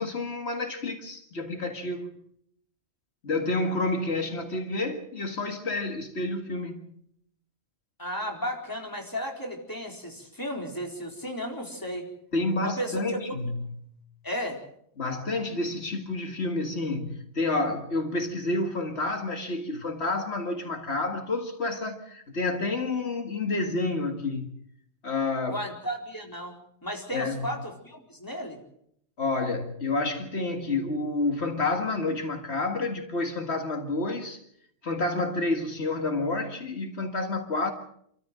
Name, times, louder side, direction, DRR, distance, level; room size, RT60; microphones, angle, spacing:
voice 1, 0.0-2.2 3.2-6.9 12.3-13.8 15.0-24.5 25.0-25.6 27.1-27.5 29.2-34.4 34.8-37.7, left 2 dB, 75° left, 2.1 m, -29 dB
voice 2, 8.0-12.0 12.6-13.0 13.3-13.5 14.2-14.6 25.5-28.6, equal, 20° left, 4.1 m, -34 dB
28.0 x 14.0 x 7.6 m
omnidirectional pair, 1.1 m